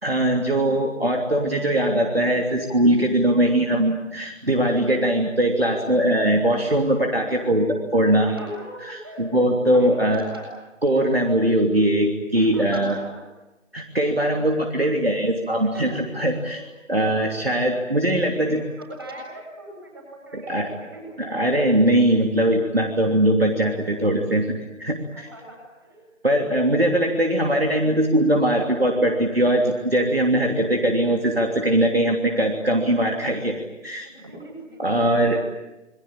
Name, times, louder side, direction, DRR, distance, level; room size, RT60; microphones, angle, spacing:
voice 1, 0.0-7.7 7.9-8.3 8.9-10.2 10.8-13.0 13.7-16.6 16.9-18.6 20.3-20.7 21.2-25.3 26.2-33.6 33.8-34.1 34.8-35.4, right 1 dB, 50° right, 2 dB, 3.1 m, -21 dB
voice 2, 8.2-9.3 9.7-10.5 12.3-13.1 15.6-16.0 16.4-16.6 18.3-21.2 25.1-26.0 34.0-35.2, right 1 dB, 20° right, -1 dB, 7.7 m, -40 dB
28.5 x 23.0 x 9.0 m, 1.1 s
figure-of-eight pair, 170°, 38 cm